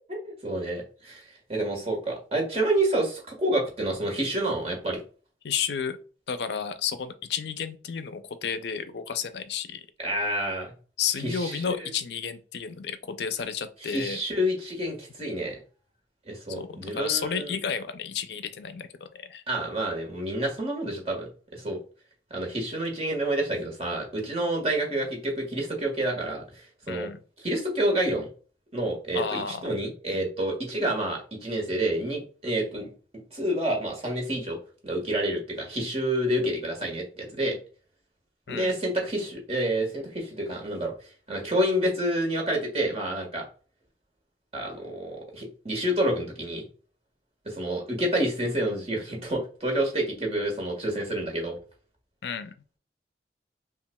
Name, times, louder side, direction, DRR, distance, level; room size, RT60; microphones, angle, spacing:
voice 1, 0.1-5.0 10.0-10.7 11.2-11.9 13.8-15.6 16.2-17.5 19.5-21.8 22.3-27.1 27.4-28.3 28.7-32.9 33.3-34.6 34.8-37.6 38.5-40.9 41.3-43.4 44.5-46.6 47.4-51.6, right 1 dB, 35° right, 1 dB, 1.4 m, -28 dB
voice 2, 5.4-6.0 6.3-9.8 11.0-14.2 16.6-19.4 26.9-27.2 29.1-29.7 38.5-38.7 52.2-52.5, left 7 dB, 70° left, 10 dB, 0.4 m, -32 dB
5.7 x 2.4 x 2.2 m, 0.38 s
head